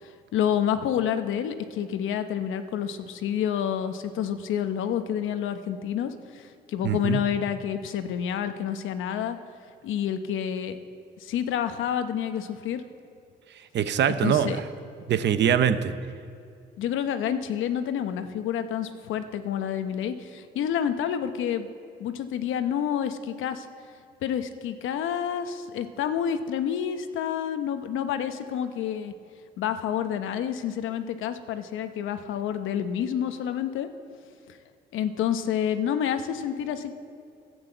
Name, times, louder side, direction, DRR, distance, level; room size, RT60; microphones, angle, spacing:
voice 1, 0.3-9.4 9.8-10.8 11.2-12.8 14.0-14.6 16.8-21.7 22.0-23.7 24.2-29.1 29.6-33.9 34.9-36.9, left 9 dB, 85° left, 9 dB, 0.9 m, -28 dB
voice 2, 6.8-7.2 13.7-14.6 15.1-15.9, right 9 dB, 60° right, 12 dB, 0.8 m, -23 dB
12.0 x 8.0 x 7.8 m, 2.4 s
cardioid pair, 90°, 20 cm